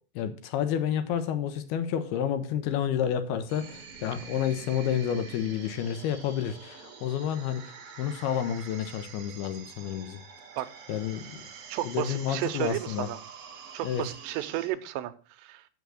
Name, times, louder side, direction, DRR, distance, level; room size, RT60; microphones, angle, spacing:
voice 1, 0.0-10.2 10.9-11.5 11.9-13.1 13.8-14.0, left 9 dB, 75° left, 2.6 m, -30 dB
sound 1, 3.5-14.7, right 6 dB, 55° right, 1.7 m, -46 dB
voice 2, 11.7-13.2 13.7-15.7, right 14 dB, 90° right, 2.9 m, -33 dB
7.1 x 6.8 x 6.3 m
omnidirectional pair, 4.8 m